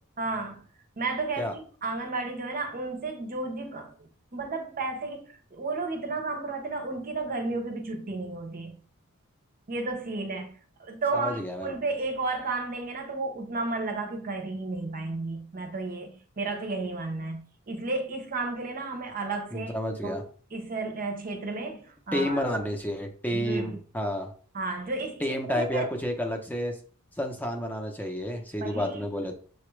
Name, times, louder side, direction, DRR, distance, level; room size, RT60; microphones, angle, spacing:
voice 1, 0.2-0.6 1.0-8.8 9.7-19.7 20.0-22.4 23.3-23.8 24.5-25.2 25.5-25.9 28.6-29.1, right 3 dB, 40° right, 0.7 m, -33 dB
voice 2, 11.1-11.7 19.5-20.2 22.1-24.3 25.2-26.7 27.2-29.3, equal, 10° left, 0.7 m, -30 dB
6.7 x 2.3 x 3.1 m
head